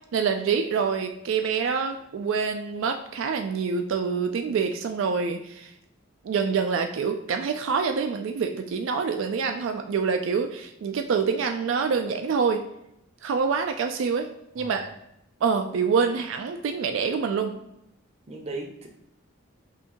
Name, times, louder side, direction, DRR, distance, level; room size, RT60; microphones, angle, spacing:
voice 1, 0.1-5.7 6.2-12.6 13.2-14.3 14.6-14.9 15.4-17.5, right 5 dB, 70° right, 5 dB, 0.3 m, -26 dB
voice 2, 14.6-14.9 17.6-17.7 18.3-18.9, right 2 dB, 30° right, 2 dB, 0.6 m, -37 dB
5.5 x 2.6 x 2.9 m, 0.82 s
head